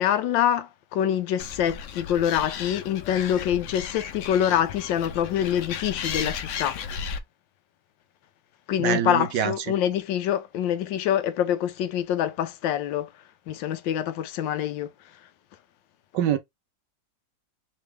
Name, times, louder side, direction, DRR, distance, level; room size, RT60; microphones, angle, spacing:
voice 1, 0.0-6.8 8.7-13.1 13.5-14.9 15.2-15.3, left 10 dB, 90° left, 1.4 m, -25 dB
Animal, 1.4-7.2, left 7 dB, 70° left, 0.7 m, -35 dB
voice 2, 8.8-9.5 16.1-16.4, right 9 dB, 75° right, 1.3 m, -24 dB
3.9 x 3.3 x 3.2 m
omnidirectional pair, 2.0 m